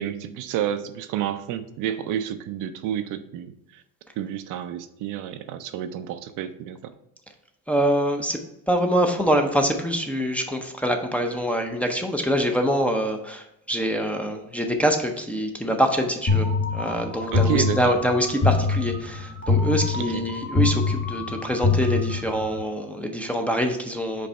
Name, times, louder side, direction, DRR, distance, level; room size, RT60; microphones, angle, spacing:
voice 1, 0.0-3.8 4.2-6.9 17.3-17.9 20.1-20.2, right 10 dB, 60° right, 10 dB, 0.5 m, -30 dB
voice 2, 7.7-16.5 16.7-24.3, equal, 5° left, 2 dB, 0.5 m, -25 dB
sound 1, 16.3-22.6, left 4 dB, 30° left, 1.2 m, -24 dB
5.3 x 3.3 x 5.4 m, 0.81 s
cardioid pair, 125°, 34 cm